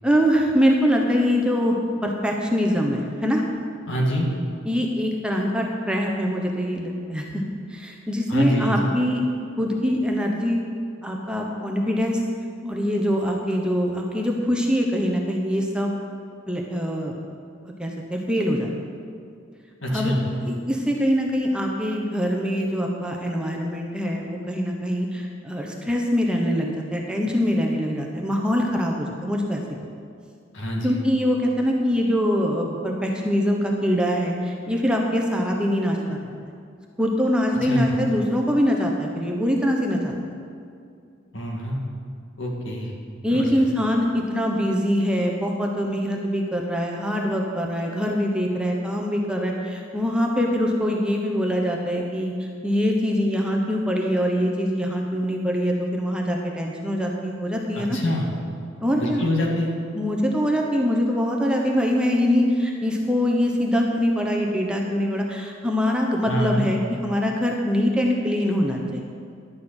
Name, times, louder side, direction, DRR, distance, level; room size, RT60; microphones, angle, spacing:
voice 1, 0.0-3.4 4.6-7.4 7.7-9.2 9.6-10.6 11.0-12.2 12.6-16.0 16.5-17.1 17.6-18.7 19.9-20.1 20.4-29.9 30.8-36.5 37.0-40.1 43.2-58.0 58.8-59.2 59.9-69.0, equal, 5° right, 0 dB, 1.0 m, -23 dB
voice 2, 3.9-4.3 8.3-8.9 19.8-20.2 30.5-31.0 37.7-37.9 41.3-41.8 42.4-42.9 43.3-43.6 57.7-58.3 59.0-59.7 66.2-66.6, equal, 70° left, -1 dB, 2.1 m, -25 dB
11.5 x 6.6 x 8.0 m, 2.3 s
head